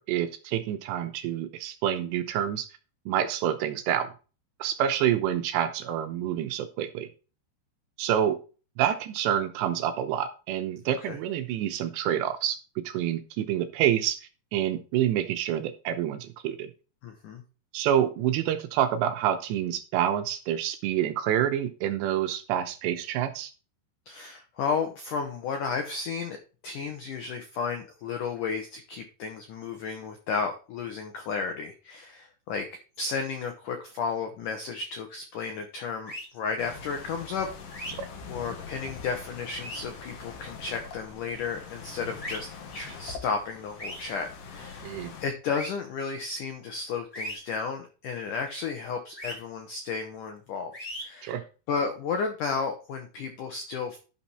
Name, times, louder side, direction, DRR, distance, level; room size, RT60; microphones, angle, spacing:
voice 1, 0.0-2.7 3.1-4.1 4.6-7.1 8.0-8.4 8.8-14.2 14.5-16.7 17.7-23.5 38.0-38.1 44.8-45.1 51.2-51.4, right 10 dB, 80° right, 9 dB, 2.8 m, -27 dB
voice 2, 17.0-17.4 24.1-26.4 26.6-32.7 33.0-37.5 37.8-38.0 38.3-44.9 45.2-50.7 51.0-51.4 51.7-54.0, left 5 dB, 90° left, 5 dB, 1.8 m, -33 dB
sound 1, 36.1-36.3 37.7-37.9 39.5-39.8 42.2-42.4 43.8-44.0 45.5-45.7 47.1-47.4 49.2-49.3 50.7-51.0, equal, 15° left, 1.2 m, -37 dB
sound 2, 36.6-45.2, left 5 dB, 60° left, 2.8 m, -43 dB
11.5 x 4.3 x 5.7 m, 0.35 s
omnidirectional pair, 5.4 m